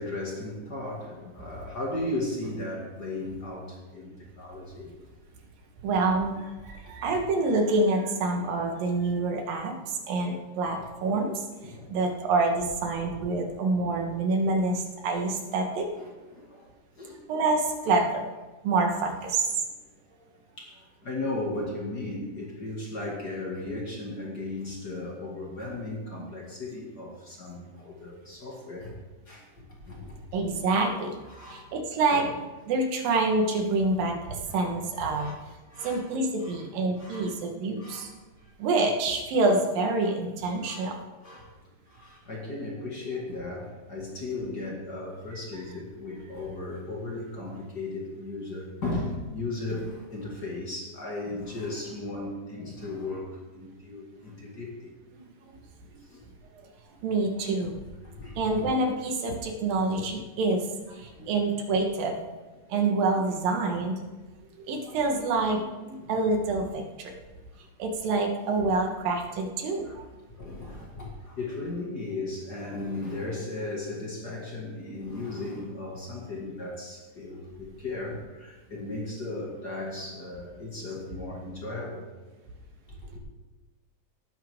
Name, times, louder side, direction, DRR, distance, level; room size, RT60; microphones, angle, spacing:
voice 1, 0.0-4.9 9.0-9.2 10.7-10.8 11.6-11.9 15.9-16.7 16.9-17.2 20.1-29.0 29.3-30.3 30.6-30.7 31.3-31.7 32.1-32.3 35.1-35.3 35.7-36.1 36.4-36.7 37.0-37.4 37.8-38.1 38.4-38.5 40.6-40.8 41.2-41.5 41.9-54.9 56.1-56.2 58.0-58.6 61.2-61.3 66.0-66.1 68.0-68.1 69.8-69.9 70.4-82.1 82.9-83.2, left 2 dB, 35° left, -2 dB, 2.0 m, -36 dB
voice 2, 5.8-15.9 17.3-18.2 18.6-19.6 30.3-31.2 31.5-32.3 32.7-35.3 35.8-38.1 38.6-41.0 55.1-55.6 56.6-56.7 57.0-57.8 58.4-62.2 62.7-63.9 64.7-67.2 67.8-70.0, right 3 dB, 75° right, 3 dB, 3.1 m, -27 dB
18.0 x 9.4 x 3.7 m, 1.2 s
omnidirectional pair, 4.1 m